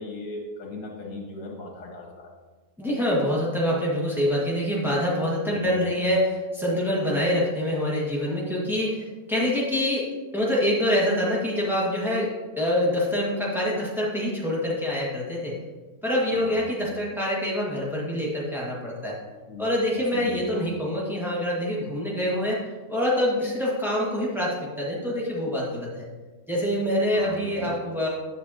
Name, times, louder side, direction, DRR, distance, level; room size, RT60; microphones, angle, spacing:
voice 1, 0.0-2.3 5.5-5.7 16.3-16.6 19.5-19.7 20.1-20.4 27.1-27.7, left 2 dB, 70° left, -1 dB, 2.3 m, -38 dB
voice 2, 2.8-15.6 16.0-19.1 19.6-22.6 22.9-26.1 26.5-28.1, left 1 dB, ahead, -5 dB, 1.5 m, -25 dB
9.9 x 6.4 x 2.9 m, 1.3 s
omnidirectional pair, 1.9 m